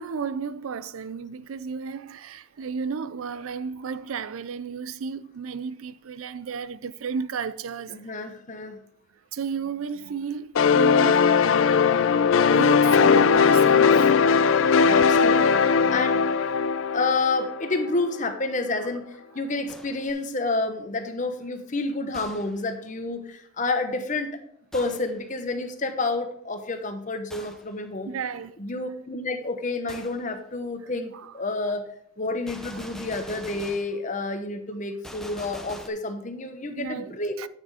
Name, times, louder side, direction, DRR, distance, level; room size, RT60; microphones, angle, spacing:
voice 1, 0.0-8.1 9.3-11.3 12.5-14.1 16.8-16.9 28.1-28.6 31.1-31.3 32.7-32.9 36.8-37.5, right 6 dB, 85° right, 0.4 m, -33 dB
voice 2, 7.9-8.8 14.9-16.2 16.9-24.4 24.7-28.1 28.6-31.9 32.2-37.4, left 3 dB, 35° left, 1.0 m, -29 dB
sound 1, 10.6-18.0, left 6 dB, 70° left, 0.4 m, -19 dB
Gunshot gunfire, 19.7-20.2 22.1-22.7 24.7-25.2 27.3-27.7 29.9-30.2 32.5-34.0 35.0-35.9, equal, ahead, 0.6 m, -43 dB
9.2 x 6.1 x 4.9 m
head